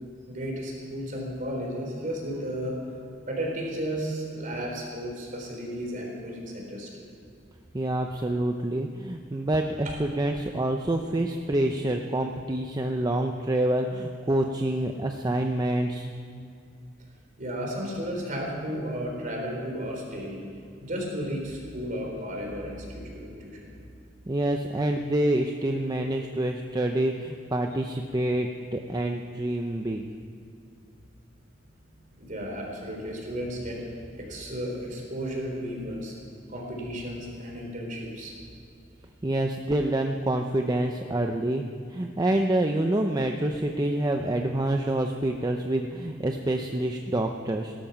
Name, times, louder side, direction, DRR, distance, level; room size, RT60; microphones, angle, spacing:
voice 1, 0.3-7.0 9.8-10.0 17.4-20.4 20.8-23.7 32.2-33.8 34.1-36.2 36.5-38.3, equal, 45° right, -1 dB, 3.9 m, -34 dB
voice 2, 7.7-16.1 24.3-30.1 39.2-41.6 41.9-47.7, right 1 dB, 20° right, 4 dB, 0.6 m, -27 dB
17.5 x 13.0 x 5.9 m, 2.5 s
head